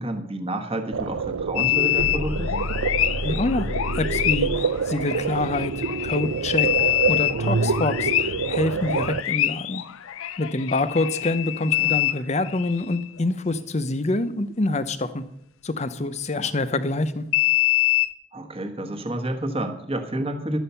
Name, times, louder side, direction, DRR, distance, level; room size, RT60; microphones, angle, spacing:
voice 1, 0.0-2.5 11.8-12.0 16.4-16.5 18.3-20.6, right 1 dB, 25° right, 5 dB, 1.2 m, -29 dB
sound 1, 0.9-9.2, right 5 dB, 80° right, 0.5 m, -27 dB
sound 2, 1.6-13.1 17.3-18.1, left 15 dB, 75° left, 0.5 m, -25 dB
sound 3, 2.0-4.8, left 1 dB, 55° left, 0.8 m, -31 dB
voice 2, 3.2-9.8 10.4-15.2 15.6-17.2, left 2 dB, 30° left, 13 dB, 0.6 m, -26 dB
12.5 x 8.0 x 5.6 m, 0.76 s
head